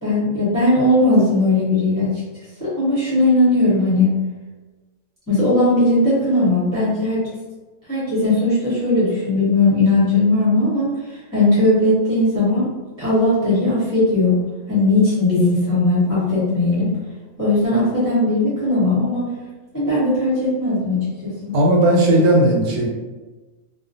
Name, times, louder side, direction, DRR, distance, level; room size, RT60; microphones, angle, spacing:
voice 1, 0.0-2.2 2.6-4.2 5.3-7.2 7.9-12.7 13.0-14.4 14.7-16.9 17.4-19.3 19.7-21.5, left 2 dB, 20° left, -11 dB, 0.6 m, -18 dB
voice 2, 21.5-22.9, right 1 dB, 75° right, -1 dB, 1.1 m, -15 dB
2.4 x 2.1 x 2.6 m, 1.2 s
omnidirectional pair, 1.5 m